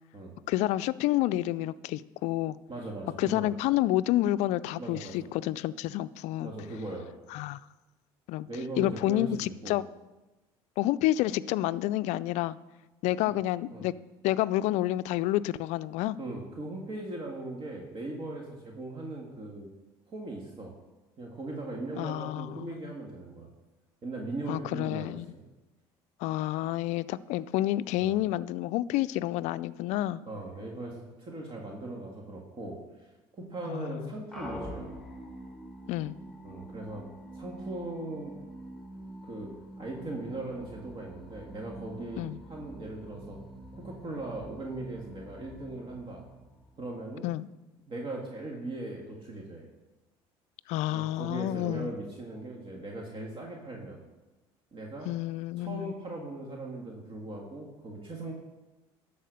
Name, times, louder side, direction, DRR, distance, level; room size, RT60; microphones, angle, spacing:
voice 1, 0.5-2.6 3.2-6.5 7.3-7.6 8.3-8.5 8.8-9.9 10.8-12.6 13.0-13.9 14.2-16.2 22.0-22.9 24.5-25.3 26.2-30.2 33.7-34.2 35.9-36.2 42.2-42.4 47.2-47.5 50.7-51.9 55.1-55.9, left 15 dB, 65° left, 17 dB, 0.4 m, -29 dB
voice 2, 2.7-3.5 4.8-5.2 6.4-7.1 8.5-9.8 13.7-13.8 16.2-19.7 20.1-20.7 21.2-23.5 24.0-25.4 28.0-28.2 30.3-32.8 33.3-35.0 36.4-37.1 37.3-38.4 39.2-39.5 39.8-43.4 43.7-46.2 46.8-47.3 47.9-49.7 50.9-54.0 54.7-55.1 55.6-58.3, right 2 dB, 45° right, 0 dB, 1.8 m, -39 dB
sound 1, 34.3-47.2, equal, 5° left, 1.5 m, -46 dB
12.0 x 4.2 x 6.5 m, 1.1 s
supercardioid pair, 75°, 13 cm